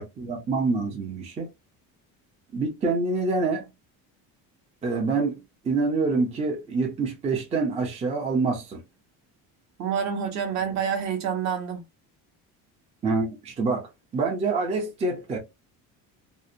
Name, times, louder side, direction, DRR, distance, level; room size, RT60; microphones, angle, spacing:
voice 1, 0.2-1.5 2.5-3.6 4.8-5.4 5.6-8.8 13.0-13.9 14.1-15.4, right 3 dB, 20° right, 0.4 m, -26 dB
voice 2, 9.8-11.8, right 7 dB, 50° right, 0.7 m, -27 dB
2.7 x 2.0 x 2.4 m
cardioid pair, 165°, 36 cm